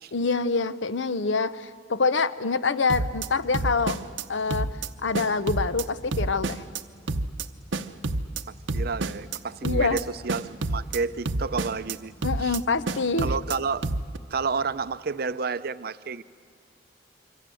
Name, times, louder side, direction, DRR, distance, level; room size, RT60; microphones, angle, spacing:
voice 1, 0.1-4.0 4.3-4.7 5.0-6.6 9.6-10.0 12.2-13.3, left 4 dB, 75° left, 13 dB, 0.8 m, -26 dB
sound 1, 2.9-3.3 3.5-4.2 4.5-4.9 5.1-5.8 6.1-6.8 7.1-7.5 7.7-8.4 8.7-9.4 9.6-10.0 10.3-11.0 11.3-12.0 12.2-12.6 12.9-13.6 13.8-14.2, right 2 dB, 85° right, 0.9 m, -28 dB
voice 2, 8.7-12.1 12.4-12.6 13.2-13.9 14.3-16.2, right 4 dB, 55° right, 14 dB, 0.6 m, -30 dB
27.0 x 24.5 x 7.7 m, 2.3 s
head